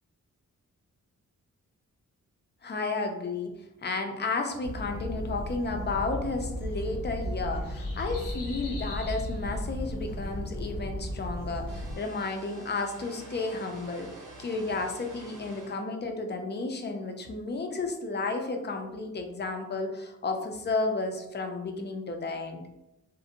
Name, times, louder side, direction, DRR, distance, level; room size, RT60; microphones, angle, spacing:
voice 1, 2.6-3.5 3.8-22.6, left 3 dB, 35° left, 4 dB, 0.4 m, -32 dB
sound 1, 4.6-12.0, equal, 85° left, 0.7 m, -35 dB
sound 2, 11.7-15.8, right 2 dB, 75° right, 0.7 m, -48 dB
2.4 x 2.1 x 2.7 m, 0.93 s
wide cardioid pair, 115°, 31 cm